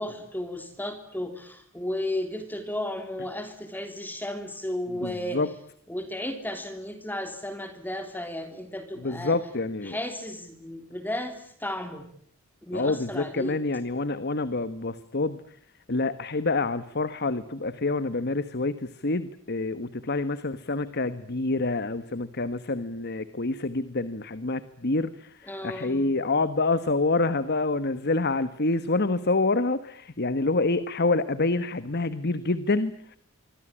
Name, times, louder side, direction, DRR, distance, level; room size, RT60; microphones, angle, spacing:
voice 1, 0.0-5.4 5.9-9.4 9.8-12.1 12.6-13.6 25.4-26.1, left 1 dB, 10° left, 7 dB, 3.3 m, -34 dB
voice 2, 5.0-5.5 9.0-10.0 12.7-15.4 15.9-33.2, left 3 dB, 50° left, 13 dB, 1.3 m, -27 dB
26.5 x 24.5 x 8.8 m, 0.64 s
head